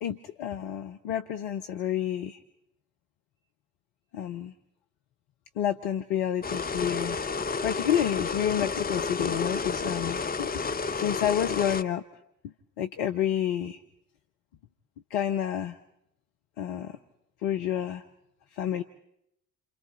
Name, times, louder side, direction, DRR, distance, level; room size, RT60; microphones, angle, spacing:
voice 1, 0.0-2.4 4.1-4.5 5.6-7.2 7.6-10.5 11.0-12.0 12.8-13.8 15.1-15.8 16.6-17.0 17.4-18.0 18.5-18.8, left 10 dB, 65° left, 8 dB, 1.0 m, -29 dB
sound 1, 6.4-11.8, left 4 dB, 20° left, 0.8 m, -31 dB
28.5 x 27.5 x 4.3 m, 0.78 s
figure-of-eight pair, 45°, 43 cm